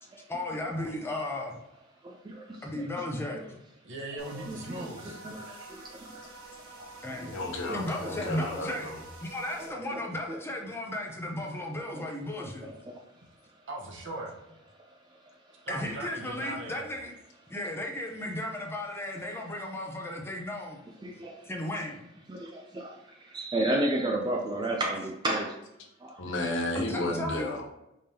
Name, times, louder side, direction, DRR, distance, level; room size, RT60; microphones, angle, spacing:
voice 1, 0.3-1.6 2.6-3.4 4.7-5.3 7.0-7.3 7.7-8.9 9.2-12.7 15.7-17.1 17.5-20.8 21.4-22.0 26.7-27.5, left 1 dB, 10° left, 0 dB, 0.7 m, -35 dB
voice 2, 3.8-5.2 11.7-11.8 13.7-14.3 15.7-16.9 20.8-20.9, right 2 dB, 60° right, -1 dB, 1.0 m, -39 dB
sound 1, 4.2-9.7, right 2 dB, 80° right, 1.2 m, -48 dB
voice 3, 4.3-5.5 8.0-8.3 8.5-8.6 9.6-10.0 10.3-10.4 11.9-12.0 12.6-12.7 21.0-21.3 22.3-22.4 22.7-22.9 23.3-25.5 26.0-26.1, right 1 dB, 20° right, 1 dB, 0.4 m, -31 dB
voice 4, 7.3-9.0 26.2-27.6, left 1 dB, 60° left, 0 dB, 1.0 m, -33 dB
5.0 x 3.6 x 2.8 m, 0.87 s
head